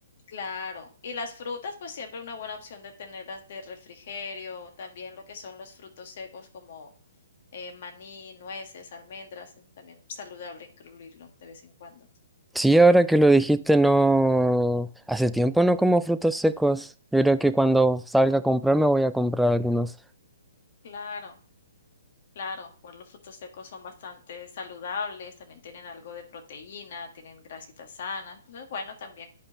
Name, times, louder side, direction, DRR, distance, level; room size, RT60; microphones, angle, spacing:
voice 1, 0.3-6.9 7.5-12.1 20.8-21.4 22.3-29.3, left 4 dB, 55° left, 1.7 m, -39 dB
voice 2, 12.6-19.9, right 1 dB, ahead, 0.4 m, -21 dB
10.5 x 5.0 x 2.9 m
figure-of-eight pair, 130°, 0 cm